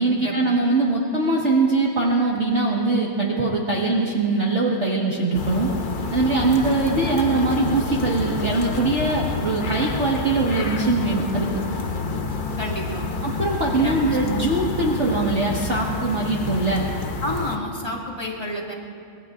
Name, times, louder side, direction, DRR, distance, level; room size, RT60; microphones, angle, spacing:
voice 1, 0.0-5.7 6.1-11.5 13.2-16.9, right 3 dB, 35° right, -4 dB, 1.8 m, -22 dB
sound 1, 5.3-17.6, left 3 dB, 75° left, 0.4 m, -28 dB
voice 2, 12.6-13.1 13.8-14.4 17.2-18.7, left 1 dB, 10° left, -3 dB, 2.2 m, -30 dB
25.5 x 22.0 x 2.6 m, 2.3 s
omnidirectional pair, 2.3 m